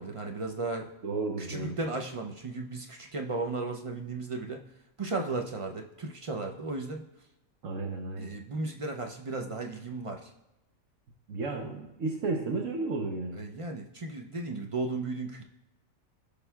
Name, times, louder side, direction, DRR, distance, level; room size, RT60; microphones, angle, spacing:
voice 1, 0.0-0.9 1.4-4.6 5.0-7.0 8.2-10.3 13.3-15.4, right 3 dB, 45° right, 3 dB, 0.4 m, -35 dB
voice 2, 1.0-1.8 7.6-8.3 11.3-13.4, right 3 dB, 70° right, 1 dB, 1.2 m, -33 dB
15.5 x 5.3 x 2.3 m, 0.95 s
omnidirectional pair, 1.4 m